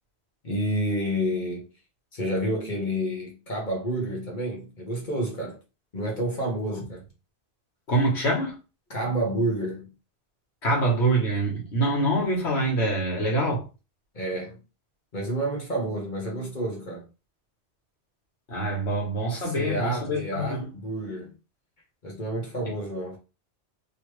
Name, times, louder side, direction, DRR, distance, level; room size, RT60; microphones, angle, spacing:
voice 1, 0.4-1.7 2.1-5.6 5.9-7.0 8.9-9.9 14.1-14.6 15.1-17.0 19.3-21.3 22.0-23.2, right 1 dB, 45° left, 1.1 m, -29 dB
voice 2, 7.9-8.6 10.6-13.6 18.5-20.7, right 1 dB, 80° left, 1.7 m, -25 dB
3.1 x 3.1 x 3.1 m
omnidirectional pair, 1.1 m